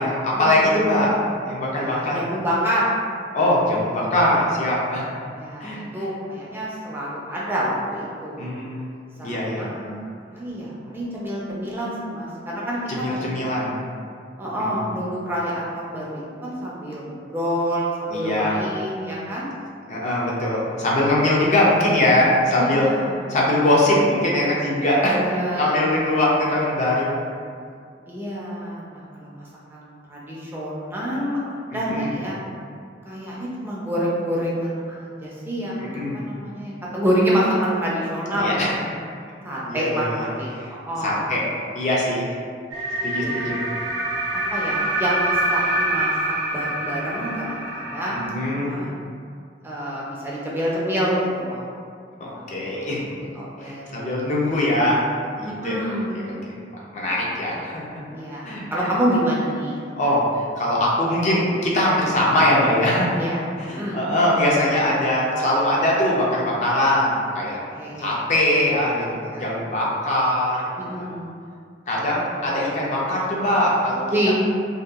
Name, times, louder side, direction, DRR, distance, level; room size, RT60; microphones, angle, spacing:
voice 1, 0.0-2.2 3.3-5.1 5.6-6.1 8.4-8.9 9.2-9.6 12.9-13.8 14.6-14.9 18.1-18.6 19.9-22.9 23.3-25.2 25.6-27.1 31.7-32.2 35.8-36.2 38.3-38.7 39.7-40.3 40.5-40.7 41.0-41.4 41.7-42.3 43.0-43.6 48.1-48.9 52.2-53.0 53.6-55.0 55.4-55.8 56.1-56.3 56.9-58.0 58.4-58.9 60.0-63.2 63.7-67.6 68.0-71.1 71.9-74.3, left 1 dB, 40° left, -5 dB, 0.5 m, -22 dB
voice 2, 1.7-2.9 5.3-8.4 9.2-10.0 10.3-12.8 13.1-13.7 14.4-19.5 22.5-23.2 25.0-25.8 28.1-32.4 33.0-38.7 39.4-41.3 43.2-43.5 44.3-46.1 46.5-48.9 49.6-51.7 52.3-52.9 53.4-54.2 55.4-56.2 58.1-59.8 63.2-63.4 63.7-64.0 67.7-68.2 69.2-69.5 70.8-71.3 74.1-74.3, equal, 10° right, -6 dB, 0.4 m, -27 dB
sound 1, 42.7-48.3, right 1 dB, 65° right, 0.6 m, -25 dB
2.7 x 2.2 x 2.3 m, 2.2 s
head